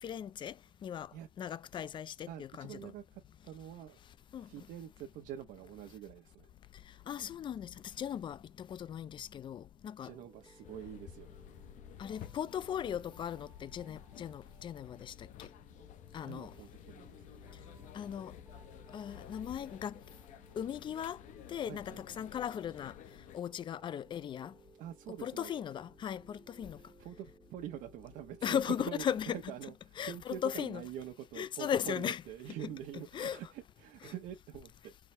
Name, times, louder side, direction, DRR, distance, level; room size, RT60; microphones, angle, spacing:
voice 1, 0.0-2.9 4.3-4.5 6.9-10.1 12.0-15.5 16.1-16.5 17.9-18.4 18.9-20.0 20.6-21.2 21.5-23.0 23.3-24.5 25.2-26.8 28.4-29.4 30.0-30.8 31.4-32.2 33.1-33.4 34.0-34.1, left 9 dB, 35° left, 0.4 m, -38 dB
voice 2, 0.9-1.3 2.3-4.0 4.4-6.5 10.0-11.3 16.2-17.4 21.7-22.0 24.8-25.5 26.7-35.1, right 11 dB, 80° right, 0.9 m, -46 dB
sound 1, 10.1-28.6, right 4 dB, 20° right, 0.8 m, -62 dB
sound 2, 10.6-23.4, left 10 dB, 70° left, 0.7 m, -53 dB
4.7 x 2.1 x 4.4 m
cardioid pair, 120°, 13 cm